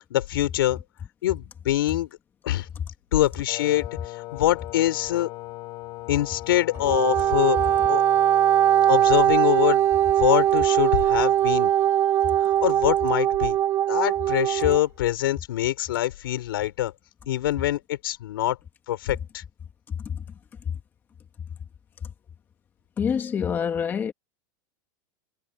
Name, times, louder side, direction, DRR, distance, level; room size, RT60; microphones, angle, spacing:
voice 1, 0.1-0.8 1.2-2.2 2.4-2.7 3.1-3.8 4.3-5.3 6.1-7.6 7.9-8.0 8.9-9.9 10.2-11.7 12.4-13.6 13.9-16.9 17.3-18.6 18.9-19.4, left 14 dB, 85° left, 5.0 m, -24 dB
Wind instrument woodwind instrument, 3.5-9.3, left 21 dB, 35° left, 5.2 m, -39 dB
Wind instrument woodwind instrument 2, 6.7-14.8, right 11 dB, 20° right, 0.6 m, -21 dB
voice 2, 23.0-24.1, left 7 dB, 15° left, 1.9 m, -26 dB
supercardioid pair, 165°, 12 cm